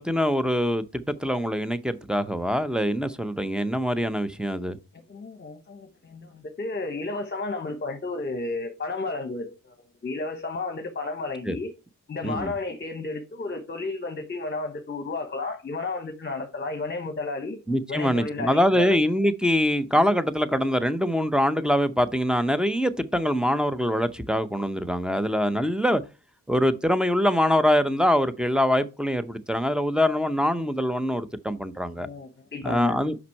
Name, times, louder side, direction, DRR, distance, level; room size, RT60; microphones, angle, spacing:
voice 1, 0.0-4.8 11.4-11.6 12.2-12.5 17.7-26.0 26.5-32.1 32.6-33.2, equal, 5° right, 0.6 m, -24 dB
voice 2, 5.1-9.7 10.0-11.7 12.1-17.6 17.9-19.0 32.0-33.0, left 3 dB, 35° left, 1.0 m, -32 dB
5.8 x 5.3 x 4.6 m
cardioid pair, 80°, 33 cm